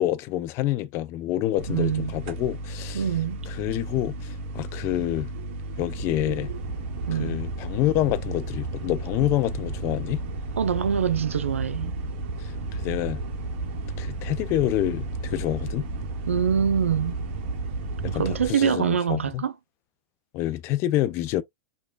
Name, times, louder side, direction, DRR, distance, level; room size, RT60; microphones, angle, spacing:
voice 1, 0.0-3.0 3.5-5.3 5.8-6.5 7.2-10.2 12.8-13.2 14.0-15.9 18.0-19.4 20.3-21.4, left 14 dB, 40° left, 0.4 m, -27 dB
sound 1, 1.6-18.5, right 2 dB, 50° right, 0.7 m, -33 dB
voice 2, 1.7-2.2 2.9-3.5 7.1-7.4 10.6-12.0 16.3-17.2 18.1-19.5, right 8 dB, 80° right, 0.4 m, -25 dB
4.8 x 2.3 x 2.3 m
figure-of-eight pair, 95°, 7 cm